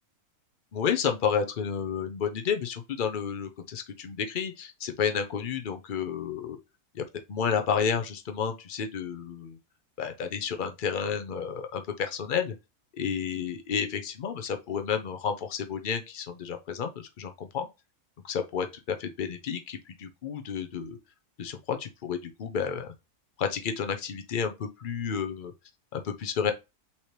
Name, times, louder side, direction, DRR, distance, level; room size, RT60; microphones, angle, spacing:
voice 1, 0.7-6.6 6.9-7.0 7.3-9.6 10.0-12.5 13.0-16.9 17.2-17.7 18.2-21.0 21.4-22.9 23.4-25.5 25.9-26.5, left 7 dB, 55° left, 0.6 m, -31 dB
5.7 x 3.0 x 3.1 m
omnidirectional pair, 1.6 m